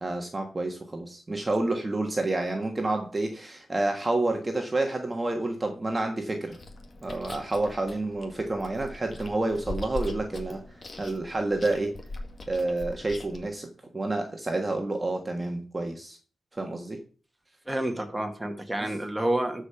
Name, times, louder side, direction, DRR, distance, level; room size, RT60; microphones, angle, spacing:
voice 1, 0.0-6.6 7.0-11.9 12.5-16.2 16.5-17.0 18.8-18.9, right 2 dB, 20° right, 3 dB, 1.4 m, -29 dB
Chewing mastication, 6.5-13.5, left 2 dB, 40° left, 2.0 m, -41 dB
voice 2, 17.7-19.7, right 1 dB, 5° right, 4 dB, 1.9 m, -29 dB
12.5 x 5.1 x 5.7 m, 0.38 s
cardioid pair, 95°, 0 cm